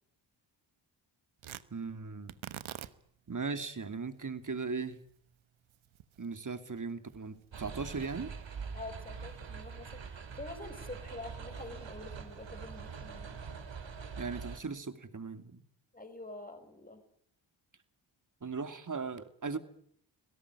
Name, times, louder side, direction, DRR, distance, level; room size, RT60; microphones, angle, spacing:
Tearing, 1.4-9.7, right 11 dB, 90° right, 1.2 m, -51 dB
voice 1, 1.7-2.4 3.3-5.0 6.2-8.3 14.2-15.6 18.4-19.6, right 4 dB, 40° right, 10 dB, 2.8 m, -38 dB
sound 1, 7.5-14.6, right 5 dB, 65° right, 3.6 m, -44 dB
voice 2, 8.7-13.4 15.9-17.0, left 2 dB, 20° left, 8 dB, 4.9 m, -46 dB
27.0 x 17.5 x 9.9 m, 0.64 s
cardioid pair, 60°, 47 cm